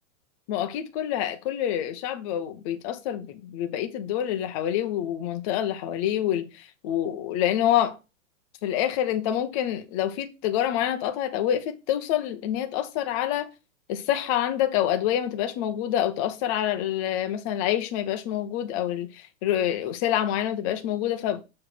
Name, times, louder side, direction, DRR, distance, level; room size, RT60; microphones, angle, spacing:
voice 1, 0.5-8.0 8.6-13.5 13.9-21.4, left 11 dB, 25° left, 0.6 m, -27 dB
7.0 x 3.1 x 5.8 m
hypercardioid pair, 150°, 42 cm